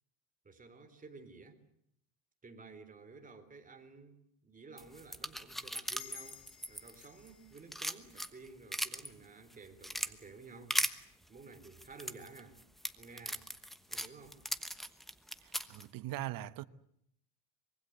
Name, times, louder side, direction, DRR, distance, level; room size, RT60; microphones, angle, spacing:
voice 1, 0.4-1.6 2.4-12.6 13.0-13.5 13.9-14.4, right 4 dB, 20° right, 3.9 m, -53 dB
sound 1, 4.8-7.3 7.6-9.1 9.5-10.1 10.7-10.9 11.6-15.8, equal, ahead, 1.1 m, -38 dB
sound 2, 6.0-9.1, left 12 dB, 55° left, 4.2 m, -57 dB
voice 2, 15.4-16.6, right 14 dB, 50° right, 1.2 m, -41 dB
25.0 x 23.0 x 8.1 m
cardioid pair, 135°, 44 cm